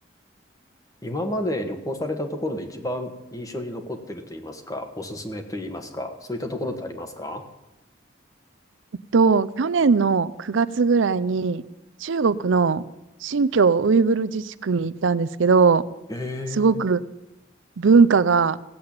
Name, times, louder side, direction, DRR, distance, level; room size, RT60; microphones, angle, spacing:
voice 1, 1.0-7.4 16.1-16.8, left 1 dB, 20° left, 6 dB, 1.5 m, -31 dB
voice 2, 9.1-11.6 12.0-12.8 13.2-15.8 16.5-17.0 17.8-18.6, right 4 dB, 85° right, 15 dB, 0.5 m, -19 dB
16.5 x 7.8 x 8.8 m, 0.95 s
head